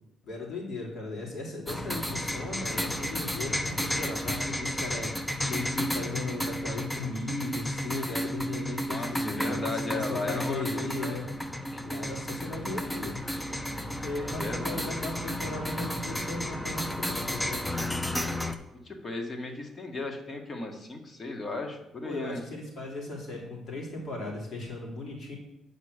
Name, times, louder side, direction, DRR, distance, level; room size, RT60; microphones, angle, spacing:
voice 1, 0.2-5.1 5.5-11.3 11.8-13.2 14.0-17.7 22.0-25.3, left 2 dB, 60° left, -2 dB, 3.5 m, -37 dB
sound 1, 1.7-18.6, equal, 10° left, 0.8 m, -32 dB
voice 2, 8.9-11.2 11.7-11.8 14.3-14.8 18.9-22.4, left 3 dB, 35° left, 3 dB, 1.8 m, -36 dB
8.4 x 5.2 x 6.7 m, 0.88 s
cardioid pair, 90°, 0 cm